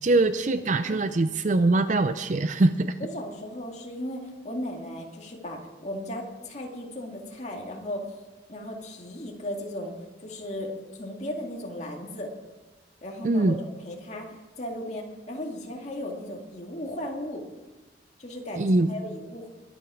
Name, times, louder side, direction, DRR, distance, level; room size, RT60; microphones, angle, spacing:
voice 1, 0.0-2.9 13.2-13.6 18.6-18.9, right 2 dB, 40° right, 11 dB, 0.5 m, -23 dB
voice 2, 3.0-8.1 8.5-9.9 10.2-12.3 13.0-13.5 13.8-17.4 18.2-19.5, left 1 dB, 40° left, 0 dB, 2.1 m, -36 dB
22.0 x 8.7 x 5.0 m, 1.2 s
head